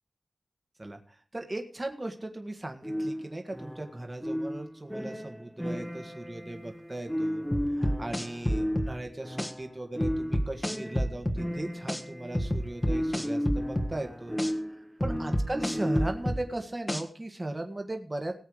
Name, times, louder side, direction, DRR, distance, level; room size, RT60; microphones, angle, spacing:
voice 1, 1.3-7.4 7.7-14.4 15.0-18.3, right 1 dB, 25° right, 4 dB, 1.7 m, -37 dB
sound 1, 2.8-16.4, equal, ahead, 0.9 m, -34 dB
sound 2, 7.5-8.9 9.4-9.5 10.0-11.4 11.9-12.0 12.3-13.9 14.4-14.5 15.0-16.4 16.9-17.0, equal, 20° left, 1.6 m, -28 dB
18.5 x 8.1 x 5.0 m, 0.41 s
wide cardioid pair, 85°, 0 cm